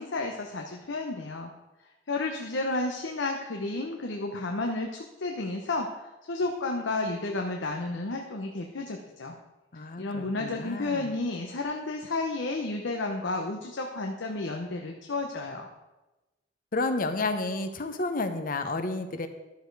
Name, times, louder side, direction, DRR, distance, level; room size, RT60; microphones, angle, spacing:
voice 1, 0.0-1.5 2.1-9.3 10.0-15.7, left 2 dB, 85° left, 2 dB, 0.9 m, -32 dB
voice 2, 9.7-11.1 16.7-19.3, left 2 dB, 50° left, 8 dB, 0.9 m, -31 dB
11.5 x 6.8 x 4.7 m, 1.0 s
head